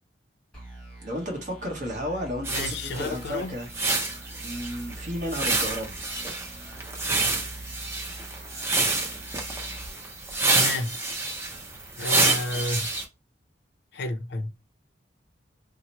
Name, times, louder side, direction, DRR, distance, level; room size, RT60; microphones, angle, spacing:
sound 1, 0.5-10.8, right 1 dB, 5° left, 1.1 m, -44 dB
voice 1, 1.0-3.7 4.3-6.0 12.6-12.7, equal, 45° right, 1.0 m, -33 dB
sound 2, 2.4-13.0, right 3 dB, 15° right, 0.6 m, -28 dB
voice 2, 2.5-3.6 10.5-11.0 12.0-12.9 13.9-14.6, left 2 dB, 60° left, 0.5 m, -31 dB
2.9 x 2.0 x 4.1 m
head